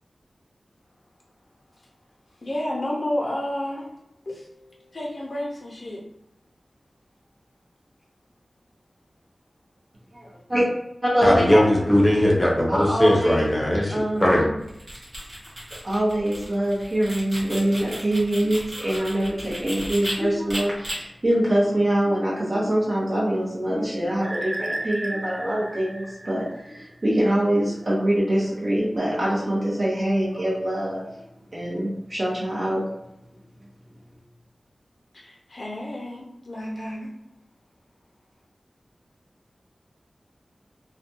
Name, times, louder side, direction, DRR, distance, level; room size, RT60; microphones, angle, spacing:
voice 1, 2.4-3.9 4.3-6.0 35.1-37.1, left 1 dB, 50° left, -2 dB, 0.6 m, -31 dB
voice 2, 10.1-10.7 11.0-11.4 12.7-13.4 13.9-14.5 15.8-31.1 31.5-32.8, right 1 dB, 45° right, -7 dB, 0.9 m, -24 dB
voice 3, 11.2-14.4, equal, 15° left, -2 dB, 0.7 m, -19 dB
sound 1, 14.6-20.1 20.5-20.9, equal, 60° right, 1.2 m, -35 dB
sound 2, 24.2-27.1, right 1 dB, 25° right, 0.4 m, -34 dB
2.5 x 2.2 x 2.7 m, 0.84 s
wide cardioid pair, 90°, 0 cm